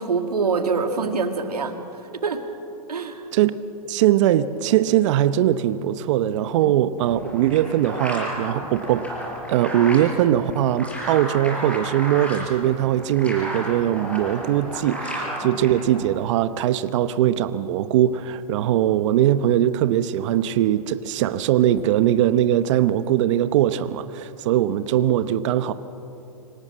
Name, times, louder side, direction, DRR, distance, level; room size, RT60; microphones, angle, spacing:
voice 1, 0.0-1.8 2.2-2.4 2.9-3.2 6.6-6.7, right 4 dB, 90° right, 6 dB, 2.0 m, -25 dB
voice 2, 3.9-9.1 9.5-25.7, right 12 dB, 50° right, 13 dB, 0.8 m, -21 dB
sound 1, 7.0-16.2, right 1 dB, 5° left, 4.8 m, -33 dB
25.5 x 17.5 x 7.5 m, 2.9 s
hypercardioid pair, 130°, 19 cm